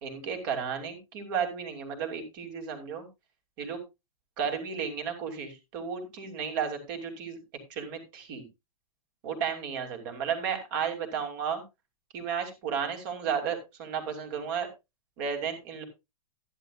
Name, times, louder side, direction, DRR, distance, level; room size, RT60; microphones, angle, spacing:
voice 1, 0.0-3.1 3.6-3.8 4.4-7.4 7.7-8.4 9.2-11.6 12.1-14.7 15.2-15.8, right 7 dB, 35° right, 5 dB, 2.7 m, -33 dB
13.0 x 10.5 x 2.4 m, 0.24 s
hypercardioid pair, 170°, 19 cm